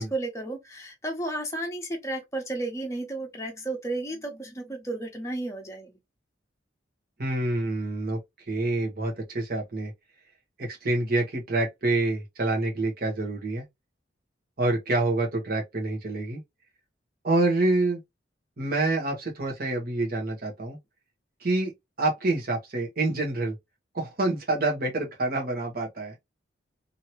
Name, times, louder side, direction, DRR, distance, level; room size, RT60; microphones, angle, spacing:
voice 1, 0.0-6.0, right 2 dB, 15° left, 0.9 m, -33 dB
voice 2, 7.2-8.2 8.5-9.9 10.6-13.6 14.6-16.4 17.2-18.0 18.6-20.8 21.4-21.7 22.0-23.5 23.9-26.1, right 2 dB, 50° right, 1.1 m, -27 dB
2.9 x 2.7 x 2.9 m
head